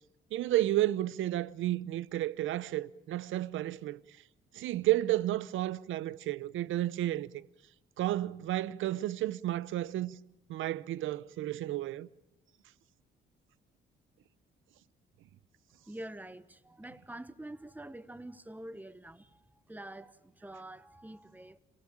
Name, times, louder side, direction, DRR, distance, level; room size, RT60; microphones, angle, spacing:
voice 1, 0.3-4.0 4.5-7.5 8.0-10.2 10.5-12.1, right 14 dB, 80° right, 0.8 m, -32 dB
voice 2, 15.8-21.6, right 1 dB, 10° right, 1.1 m, -46 dB
28.0 x 16.5 x 8.8 m
cardioid pair, 90°, 20 cm